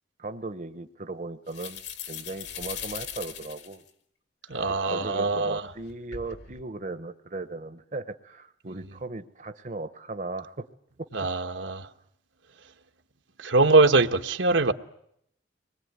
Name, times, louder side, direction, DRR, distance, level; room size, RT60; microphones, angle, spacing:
voice 1, 0.2-1.8 2.1-3.8 4.8-10.6 11.2-11.3, right 2 dB, 40° right, 1.0 m, -37 dB
sound 1, 1.5-3.9 4.5-5.1 5.8-6.6, left 8 dB, 65° left, 2.3 m, -40 dB
voice 2, 4.5-5.7 11.1-11.9 13.4-14.7, right 3 dB, 80° right, 1.4 m, -22 dB
25.5 x 21.0 x 9.5 m
head